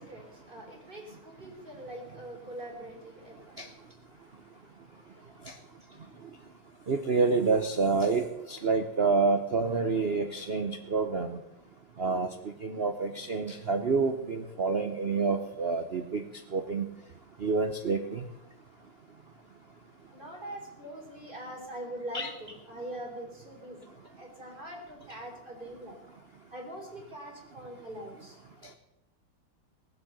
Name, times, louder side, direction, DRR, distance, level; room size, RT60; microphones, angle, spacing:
voice 1, 0.1-3.3 20.1-23.8 24.2-25.9 26.5-28.3, right 1 dB, 20° right, 0 dB, 3.7 m, -43 dB
voice 2, 6.9-11.4 12.0-12.3 12.6-16.2 16.5-16.9 17.4-18.2 22.1-22.3, right 4 dB, 70° right, 6 dB, 0.5 m, -28 dB
19.0 x 7.7 x 7.9 m, 0.92 s
omnidirectional pair, 2.4 m